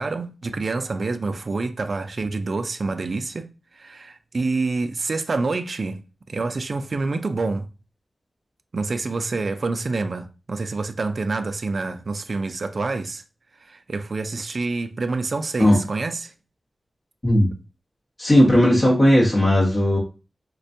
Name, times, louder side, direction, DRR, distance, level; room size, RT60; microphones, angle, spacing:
voice 1, 0.0-3.5 3.7-6.0 6.3-7.7 8.7-13.2 13.6-16.3, right 3 dB, 55° right, 0.3 m, -27 dB
voice 2, 18.2-20.0, left 1 dB, 35° left, 1.2 m, -16 dB
4.1 x 2.2 x 2.6 m
wide cardioid pair, 105°, 0 cm